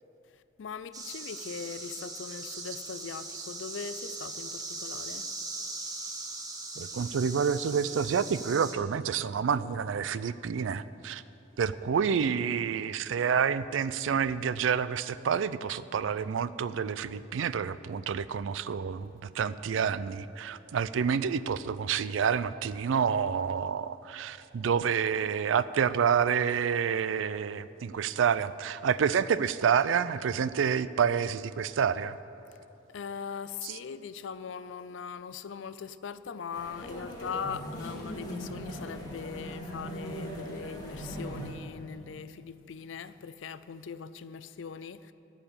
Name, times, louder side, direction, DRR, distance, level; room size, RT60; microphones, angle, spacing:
voice 1, 0.3-5.3 32.9-45.1, left 6 dB, 80° left, 0.4 m, -40 dB
sound 1, 0.9-8.7, right 3 dB, 20° right, 1.1 m, -40 dB
voice 2, 6.8-11.2 11.6-32.2 33.6-33.7, right 7 dB, 85° right, 0.4 m, -28 dB
sound 2, 36.5-41.5, equal, 20° left, 1.9 m, -39 dB
14.5 x 5.0 x 8.9 m
head